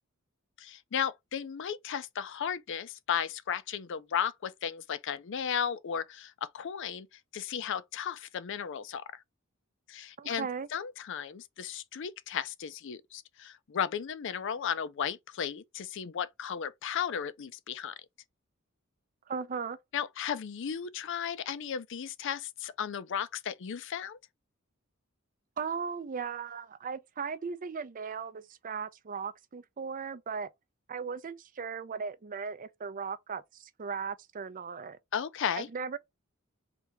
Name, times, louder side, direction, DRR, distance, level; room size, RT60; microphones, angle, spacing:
voice 1, 0.6-7.1 7.3-9.2 9.9-17.9 19.9-24.2 35.1-35.7, left 8 dB, 60° left, 0.4 m, -35 dB
voice 2, 10.2-10.7 19.3-19.8 25.6-30.5 30.9-35.0 35.6-36.0, right 5 dB, 40° right, 0.5 m, -37 dB
3.4 x 2.7 x 4.6 m
head